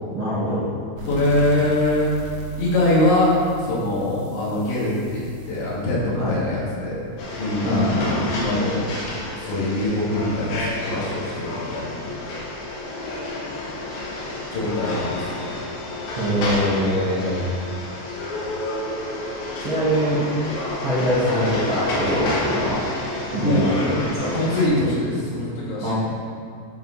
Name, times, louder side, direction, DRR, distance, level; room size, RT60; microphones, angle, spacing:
voice 1, 0.1-0.7 6.1-6.4 7.6-8.1 16.2-17.4 19.6-20.3 20.8-22.9 23.3-24.3 25.8-25.9, equal, 60° right, -12 dB, 1.3 m, -23 dB
voice 2, 1.0-2.1 2.6-3.3 3.6-7.0 7.4-7.9 8.3-9.0 9.3-12.1 14.5-15.3 17.0-17.3 23.4-23.6 24.3-25.9, left 1 dB, 85° left, -8 dB, 4.7 m, -23 dB
sound 1, 1.0-8.2, right 2 dB, 90° right, 4.1 m, -38 dB
sound 2, 7.2-24.7, left 2 dB, 65° left, 2.7 m, -30 dB
12.5 x 5.2 x 4.2 m, 2.3 s
omnidirectional pair, 5.2 m